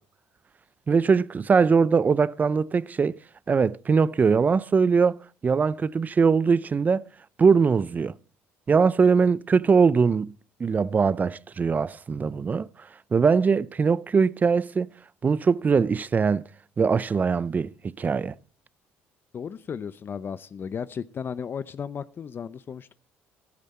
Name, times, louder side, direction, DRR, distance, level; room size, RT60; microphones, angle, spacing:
voice 1, 0.9-3.2 3.5-7.1 7.4-8.1 8.7-10.3 10.6-12.7 13.1-14.9 15.2-16.4 16.8-18.4, right 5 dB, 30° right, 0.6 m, -21 dB
voice 2, 19.3-22.9, left 7 dB, 45° left, 0.7 m, -35 dB
15.0 x 12.0 x 4.3 m
supercardioid pair, 80°, 5 cm